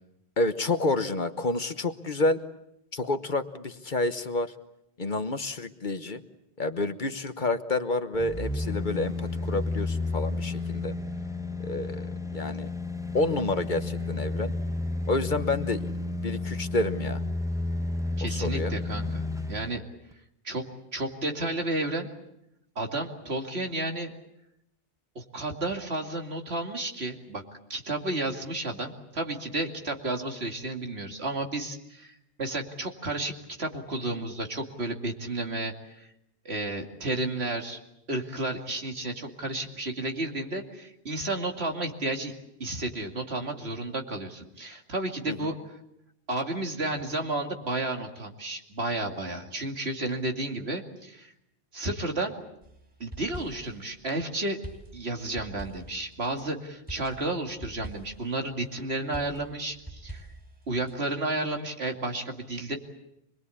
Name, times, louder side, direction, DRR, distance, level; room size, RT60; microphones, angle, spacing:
voice 1, 0.4-2.4 2.9-4.5 5.0-6.2 6.6-11.0 11.6-12.7 13.1-14.5 15.1-17.2 18.3-18.7 45.3-45.5, left 2 dB, 50° left, 10 dB, 1.2 m, -29 dB
sound 1, 8.1-19.7 20.1-20.2, left 2 dB, 5° right, 0.8 m, -32 dB
voice 2, 18.2-19.8 20.4-20.6 20.9-22.1 22.8-24.1 25.1-27.4 27.7-36.1 36.4-37.8 38.1-42.3 42.6-45.6 46.3-51.3 51.7-52.3 53.0-54.6 54.9-60.3 60.7-62.8, right 2 dB, 75° right, 3 dB, 2.8 m, -32 dB
sound 2, 52.6-53.8 54.6-56.4 56.9-58.3 59.1-60.9, right 1 dB, 20° right, 5.6 m, -44 dB
26.0 x 21.5 x 8.5 m, 0.81 s
omnidirectional pair, 1.1 m